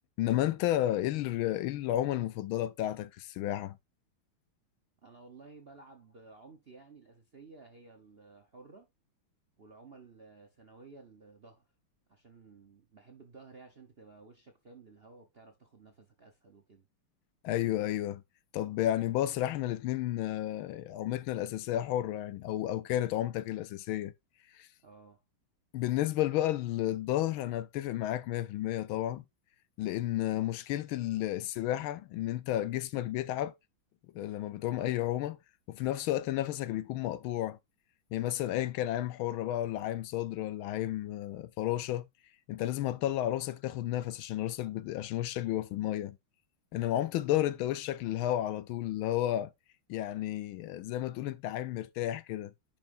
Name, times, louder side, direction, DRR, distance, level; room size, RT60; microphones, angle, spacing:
voice 1, 0.2-3.8 17.4-18.2 18.5-24.1 24.5-24.7 25.7-29.2 29.8-33.5 34.1-35.4 35.7-37.6 38.1-42.1 42.5-46.2 46.7-49.5 49.9-52.5, left 13 dB, 75° left, 1.4 m, -32 dB
voice 2, 5.0-8.9 9.6-11.7 12.1-16.9 24.8-25.2, right 4 dB, 45° right, 0.8 m, -54 dB
10.5 x 5.5 x 2.6 m
omnidirectional pair, 2.4 m